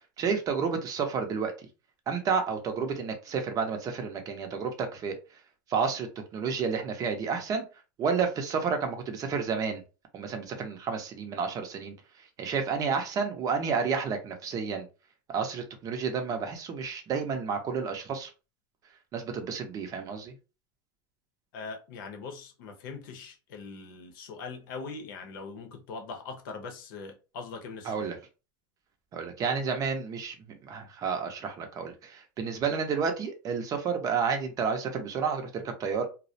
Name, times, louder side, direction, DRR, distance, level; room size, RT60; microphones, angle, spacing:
voice 1, 0.0-1.5 2.1-5.2 5.7-6.1 6.3-7.6 8.0-9.8 10.1-11.9 12.4-14.9 15.3-18.3 19.1-20.3 27.9-28.2 29.1-30.3 30.6-36.1, right 5 dB, 30° right, 0.6 m, -30 dB
voice 2, 21.5-28.1, left 4 dB, 75° left, 0.7 m, -41 dB
2.3 x 2.0 x 2.6 m
supercardioid pair, 130°, 11 cm